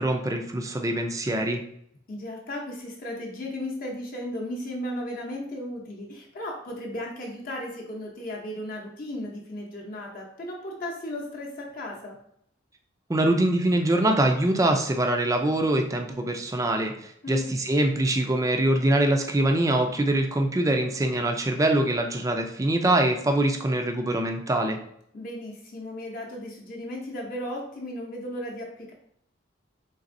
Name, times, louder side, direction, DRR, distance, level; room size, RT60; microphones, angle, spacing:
voice 1, 0.0-1.6 13.1-24.8, right 1 dB, 15° right, 4 dB, 0.3 m, -24 dB
voice 2, 2.1-12.2 17.2-17.5 25.1-28.9, left 1 dB, 45° left, -2 dB, 0.7 m, -35 dB
4.0 x 3.3 x 2.5 m, 0.71 s
head